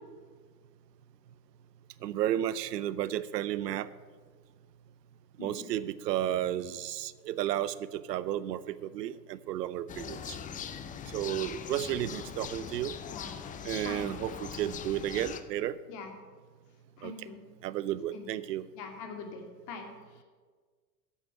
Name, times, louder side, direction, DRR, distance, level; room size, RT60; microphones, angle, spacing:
voice 1, 2.0-3.9 5.4-10.4 11.1-12.9 13.6-15.8 17.0-17.3 17.6-18.7, right 12 dB, 75° right, 17 dB, 0.6 m, -33 dB
sound 1, 9.9-15.4, left 8 dB, 15° left, 0.5 m, -41 dB
voice 2, 17.0-17.4 18.1-18.2 18.8-19.9, left 4 dB, 50° left, 3 dB, 2.5 m, -43 dB
8.3 x 7.7 x 7.9 m, 1.5 s
hypercardioid pair, 90°, 50 cm